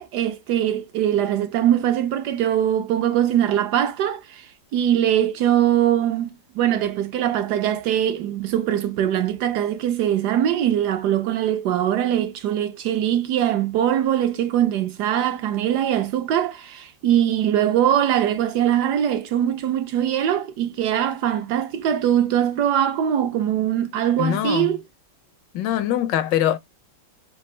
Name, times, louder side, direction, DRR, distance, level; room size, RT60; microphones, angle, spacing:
voice 1, 0.0-4.5 4.7-24.8, right 10 dB, 70° right, 1.0 m, -22 dB
voice 2, 24.2-24.7 25.5-26.6, left 11 dB, 75° left, 1.2 m, -22 dB
6.2 x 2.4 x 3.1 m
omnidirectional pair, 2.0 m